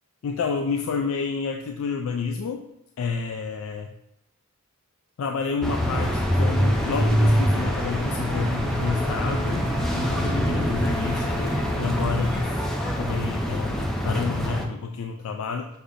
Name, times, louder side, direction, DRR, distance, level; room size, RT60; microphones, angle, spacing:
voice 1, 0.2-2.6 3.0-3.9 5.2-12.5 12.8-15.7, left 5 dB, 70° left, 3 dB, 0.3 m, -29 dB
sound 1, 5.6-14.7, equal, ahead, 0.4 m, -25 dB
sound 2, 6.0-12.4, right 1 dB, 60° right, 0.6 m, -32 dB
6.6 x 2.6 x 2.5 m, 0.82 s
head